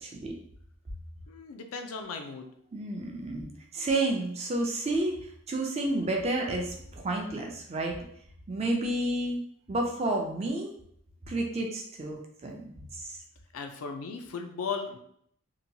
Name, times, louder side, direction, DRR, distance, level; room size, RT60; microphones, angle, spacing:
voice 1, 0.0-0.3 2.7-5.2 5.5-8.0 8.5-10.8 11.3-13.2, right 2 dB, 30° right, 1 dB, 0.4 m, -31 dB
voice 2, 1.3-2.5 13.5-15.0, left 5 dB, 85° left, 5 dB, 0.4 m, -36 dB
2.8 x 2.2 x 2.7 m, 0.68 s
head